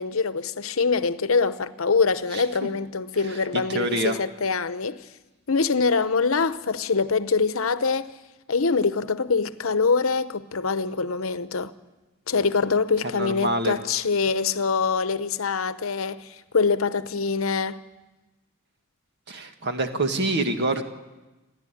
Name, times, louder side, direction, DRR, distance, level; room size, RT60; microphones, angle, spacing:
voice 1, 0.0-5.1 5.5-8.1 8.5-11.7 12.3-17.8, left 4 dB, 70° left, 0.9 m, -24 dB
voice 2, 3.5-4.2 13.2-13.8 19.3-20.8, right 2 dB, 55° right, 1.9 m, -26 dB
29.5 x 11.0 x 10.0 m
head